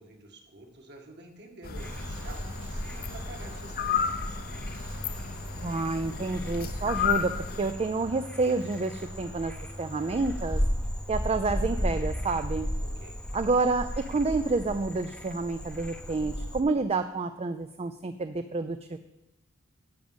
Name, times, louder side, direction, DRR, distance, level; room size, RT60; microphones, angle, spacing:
voice 1, 0.0-4.8 12.8-13.2, right 1 dB, 55° right, 2 dB, 2.1 m, -49 dB
sound 1, 1.6-7.7, left 7 dB, 45° left, 0.7 m, -33 dB
Frog, 1.7-16.6, equal, 5° left, 0.8 m, -35 dB
Wind, 1.8-10.6, right 2 dB, 70° right, 3.0 m, -53 dB
voice 2, 5.6-9.5 9.8-10.6 11.1-12.7 13.3-19.0, right 3 dB, 30° right, 9 dB, 0.5 m, -29 dB
10.5 x 6.4 x 8.0 m, 0.93 s
head